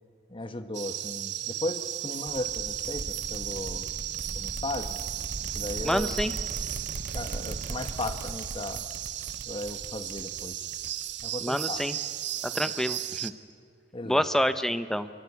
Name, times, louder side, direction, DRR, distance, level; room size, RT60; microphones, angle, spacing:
voice 1, 0.3-3.9 4.3-5.0 5.5-6.1 7.1-8.9 9.4-10.7 11.2-11.8 13.9-14.2, left 2 dB, 30° left, 9 dB, 1.2 m, -36 dB
sound 1, 0.7-13.3, right 12 dB, 80° right, 1.0 m, -35 dB
sound 2, 2.3-11.5, right 2 dB, 55° right, 0.8 m, -39 dB
voice 2, 5.8-6.3 11.4-12.0 12.4-13.3 14.1-15.1, equal, 5° left, 10 dB, 0.9 m, -27 dB
26.5 x 23.5 x 8.5 m, 2.3 s
head